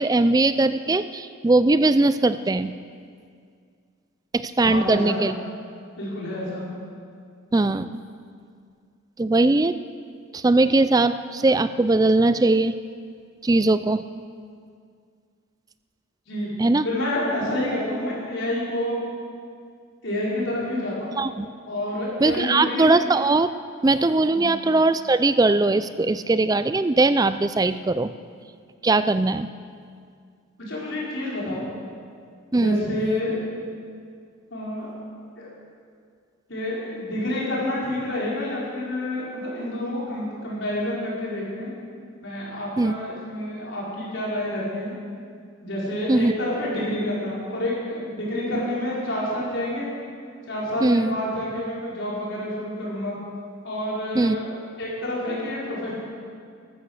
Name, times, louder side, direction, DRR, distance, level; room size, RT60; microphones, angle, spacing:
voice 1, 0.0-2.7 4.3-5.3 7.5-7.9 9.2-9.7 10.3-12.8 13.4-14.0 16.6-16.8 21.2-21.5 22.2-23.5 23.8-28.1 28.8-29.5 32.5-32.8 42.8-42.9 46.1-46.3 50.8-51.2 54.2-54.4, right 2 dB, 20° right, 13 dB, 0.3 m, -20 dB
voice 2, 4.6-5.3 6.0-6.6 16.3-16.5 16.8-19.0 20.0-21.2 21.7-22.9 24.3-24.5 30.7-31.7 32.5-33.3 34.5-34.9 35.4-35.5 36.5-41.7 42.2-44.9 45.6-49.9 50.5-53.2 53.6-55.9, left 1 dB, 65° left, -6 dB, 4.9 m, -28 dB
13.5 x 13.0 x 6.5 m, 2.2 s
head